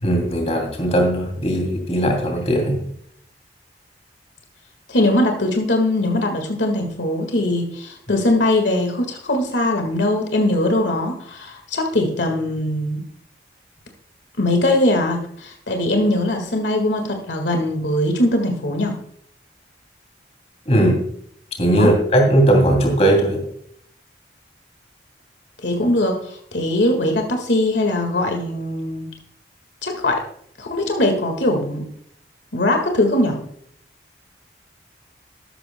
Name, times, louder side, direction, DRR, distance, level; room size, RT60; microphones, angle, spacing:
voice 1, 0.0-2.8 20.7-21.0 21.6-23.4, right 1 dB, 35° left, 2 dB, 2.8 m, -18 dB
voice 2, 4.9-13.0 14.4-19.0 21.7-21.9 25.6-29.1 29.8-30.3 30.6-31.9 32.5-33.4, left 1 dB, 80° left, 4 dB, 1.7 m, -21 dB
13.5 x 12.0 x 2.2 m, 0.66 s
head